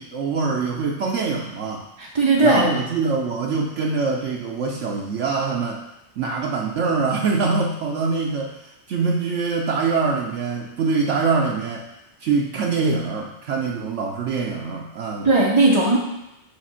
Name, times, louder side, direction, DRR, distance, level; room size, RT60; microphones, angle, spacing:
voice 1, 0.0-1.9 2.4-5.9 6.2-11.9 12.2-15.3, right 4 dB, 70° right, -1 dB, 0.9 m, -24 dB
voice 2, 2.0-2.7 15.2-16.0, right 2 dB, 35° right, -3 dB, 0.4 m, -17 dB
4.9 x 3.5 x 5.6 m, 0.91 s
omnidirectional pair, 1.4 m